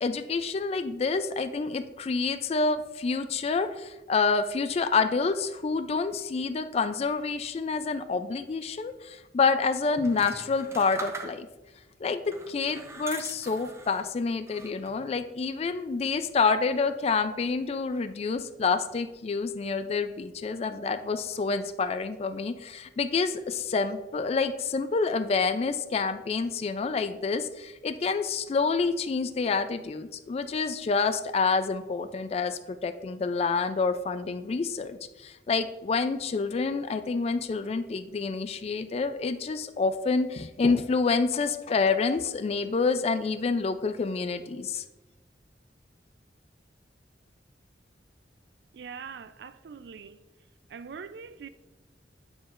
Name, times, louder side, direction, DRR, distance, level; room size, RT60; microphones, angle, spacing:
voice 1, 0.0-11.5 12.0-44.8, left 4 dB, 35° left, 0.3 m, -28 dB
sound 1, 10.0-11.7 12.3-14.1 14.5-15.1, right 3 dB, 15° right, 0.7 m, -42 dB
voice 2, 48.7-50.2 50.7-51.5, right 6 dB, 65° right, 0.4 m, -42 dB
9.1 x 6.2 x 2.5 m
head